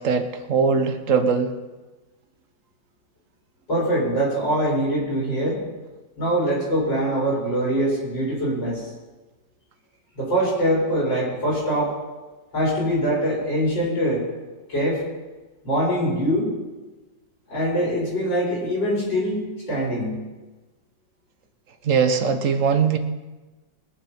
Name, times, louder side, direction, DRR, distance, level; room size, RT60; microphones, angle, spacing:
voice 1, 0.0-1.5 21.8-23.0, right 5 dB, 50° right, 8 dB, 1.2 m, -21 dB
voice 2, 3.7-5.6 6.2-8.9 10.2-12.0 12.5-14.2 14.7-15.0 15.6-16.5 17.5-20.2, equal, 70° left, -6 dB, 6.0 m, -23 dB
22.0 x 7.4 x 5.6 m, 1.2 s
omnidirectional pair, 2.1 m